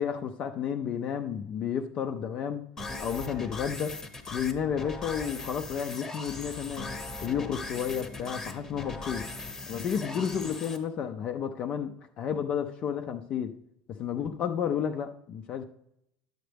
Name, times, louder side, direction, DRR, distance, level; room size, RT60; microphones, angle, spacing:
voice 1, 0.0-2.6 3.0-4.0 4.3-6.9 7.2-9.2 9.7-13.5 14.0-15.6, left 8 dB, 40° left, 0.5 m, -31 dB
sound 1, 2.8-10.8, left 2 dB, 15° left, 0.9 m, -39 dB
10.0 x 7.8 x 3.4 m
supercardioid pair, 145°, 3 cm